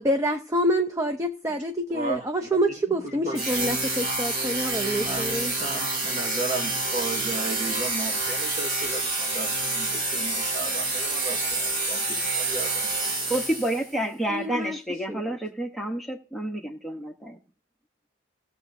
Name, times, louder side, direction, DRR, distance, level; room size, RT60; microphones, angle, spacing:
voice 1, 0.0-5.5 14.3-14.8 15.1-15.4, equal, 15° right, 0.6 m, -27 dB
voice 2, 1.9-2.5 2.9-3.5 5.0-13.1, right 3 dB, 40° right, 2.5 m, -35 dB
sound 1, 3.3-13.9, right 2 dB, 60° right, 3.0 m, -28 dB
voice 3, 13.3-17.4, right 1 dB, ahead, 1.0 m, -29 dB
18.0 x 7.1 x 2.7 m
head